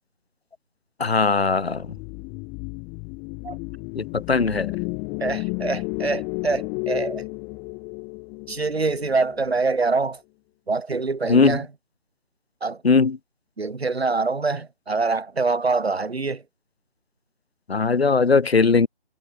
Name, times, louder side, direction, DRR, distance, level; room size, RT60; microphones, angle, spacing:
voice 1, 1.0-1.9 4.0-4.7 11.3-11.6 12.8-13.2 17.7-18.9, left 4 dB, 70° left, 2.0 m, -19 dB
sound 1, 1.7-10.0, left 36 dB, 5° left, 2.0 m, -33 dB
voice 2, 5.2-7.2 8.5-10.2 10.7-11.7 12.6-12.8 13.6-16.4, right 4 dB, 75° right, 4.6 m, -25 dB
hypercardioid pair, 175°, 32 cm